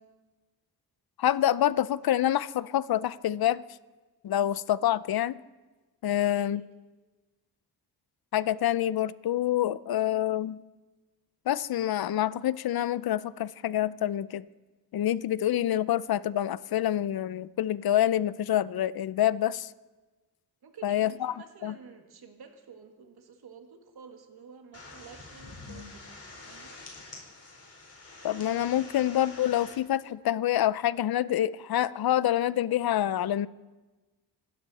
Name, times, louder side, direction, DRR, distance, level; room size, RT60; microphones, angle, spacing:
voice 1, 1.2-3.6 4.2-5.4 6.0-6.6 8.3-10.6 11.5-14.4 14.9-19.7 20.8-21.3 21.6-21.7 28.2-33.5, left 12 dB, 65° left, 18 dB, 0.6 m, -27 dB
voice 2, 6.1-6.7 20.6-26.2 26.5-26.7, right 6 dB, 70° right, 4 dB, 1.9 m, -51 dB
sound 1, 24.7-29.8, left 3 dB, 35° left, 4.2 m, -46 dB
26.0 x 13.0 x 4.2 m, 1.2 s
cardioid pair, 100°, 40 cm